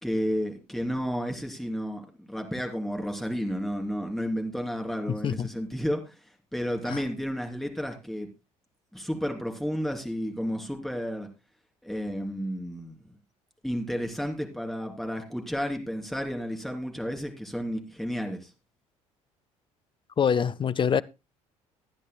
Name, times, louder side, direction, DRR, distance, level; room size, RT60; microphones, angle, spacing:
voice 1, 0.0-6.1 6.5-8.3 8.9-11.3 11.8-13.0 13.6-18.5, equal, ahead, 3.2 m, -32 dB
voice 2, 5.1-5.5 6.9-7.0 20.2-21.0, left 7 dB, 30° left, 0.6 m, -25 dB
22.0 x 9.9 x 2.2 m
figure-of-eight pair, 50°, 17 cm